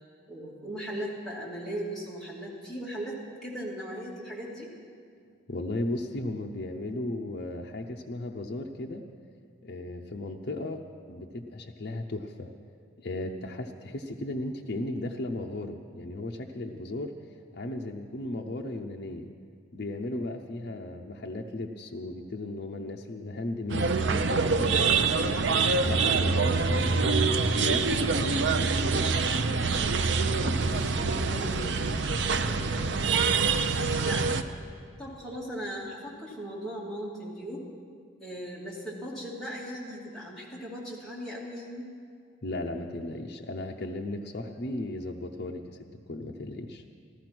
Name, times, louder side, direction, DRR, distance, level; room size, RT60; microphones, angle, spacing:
voice 1, 0.3-4.7 20.7-20.9 30.1-34.3 35.0-37.6 38.2-41.8, equal, ahead, -7 dB, 2.6 m, -39 dB
voice 2, 5.5-9.0 9.6-12.5 13.0-17.1 17.5-19.3 19.7-25.4 25.8-29.1 42.4-45.8 46.1-46.8, left 2 dB, 50° left, 1 dB, 0.6 m, -36 dB
sound 1, 23.7-34.4, right 4 dB, 60° right, 0.6 m, -25 dB
14.5 x 14.0 x 6.0 m, 2.1 s
head